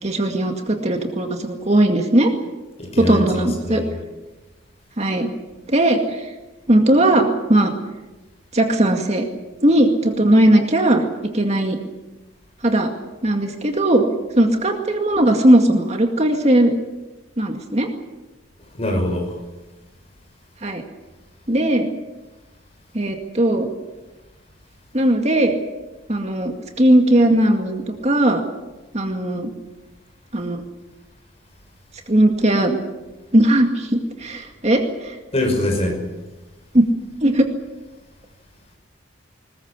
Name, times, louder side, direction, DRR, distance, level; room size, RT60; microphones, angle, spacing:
voice 1, 0.0-2.3 3.0-3.8 5.0-5.3 5.7-6.3 6.7-7.7 8.5-9.3 9.6-11.1 11.3-11.8 12.6-12.9 13.2-14.0 14.4-16.8 17.4-17.9 20.6-20.8 21.5-21.9 22.9-23.7 24.9-25.6 26.1-28.4 28.9-29.5 30.3-30.6 32.1-32.8 33.3-35.2 36.7-36.8 37.2-37.5, right 1 dB, 35° right, 4 dB, 2.2 m, -18 dB
voice 2, 2.8-3.9 18.7-19.4 35.3-36.0, left 1 dB, 30° left, 3 dB, 5.7 m, -23 dB
21.0 x 20.5 x 8.4 m, 1.1 s
head